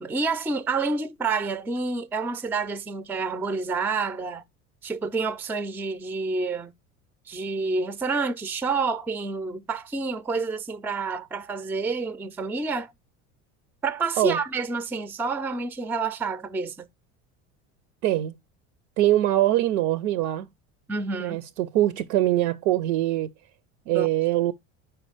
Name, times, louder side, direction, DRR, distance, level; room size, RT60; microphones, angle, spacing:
voice 1, 0.0-4.4 4.8-6.7 7.3-12.9 13.8-16.9 20.9-21.4 23.9-24.1, right 4 dB, 5° right, 0.3 m, -28 dB
voice 2, 18.0-18.3 19.0-20.5 21.2-23.3 23.9-24.5, right 14 dB, 75° right, 0.5 m, -23 dB
4.8 x 4.5 x 4.9 m
hypercardioid pair, 80°, 37 cm